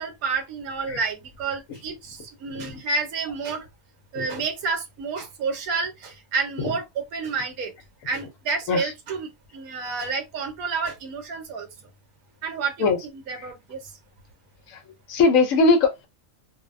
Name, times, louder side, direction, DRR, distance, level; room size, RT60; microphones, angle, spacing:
voice 1, 0.0-3.7 4.1-7.7 8.0-11.7 12.4-13.8, right 4 dB, 75° right, 1.1 m, -30 dB
voice 2, 15.1-16.1, left 3 dB, 70° left, 0.9 m, -20 dB
2.6 x 2.0 x 2.4 m
omnidirectional pair, 1.6 m